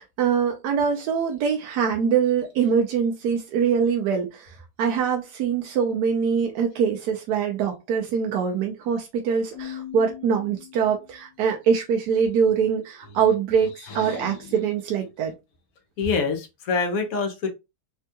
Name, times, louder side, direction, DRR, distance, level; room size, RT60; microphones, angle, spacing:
voice 1, 0.0-15.3, right 7 dB, 85° right, 1.2 m, -23 dB
Keyboard (musical), 9.5-11.3, left 11 dB, 85° left, 1.2 m, -40 dB
voice 2, 13.9-14.4 16.0-17.5, left 4 dB, 65° left, 1.1 m, -26 dB
3.5 x 2.2 x 2.7 m
omnidirectional pair, 1.7 m